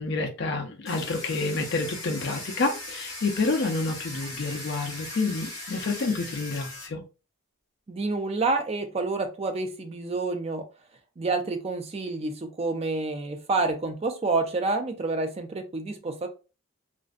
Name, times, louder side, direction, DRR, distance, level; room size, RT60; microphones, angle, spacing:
voice 1, 0.0-7.0, left 3 dB, 50° left, 4 dB, 0.4 m, -28 dB
Domestic sounds home sounds, 0.9-6.9, left 2 dB, 15° left, 0.7 m, -39 dB
voice 2, 7.9-10.6 11.2-16.3, right 3 dB, 25° right, 6 dB, 0.3 m, -28 dB
2.5 x 2.1 x 2.4 m, 0.32 s
head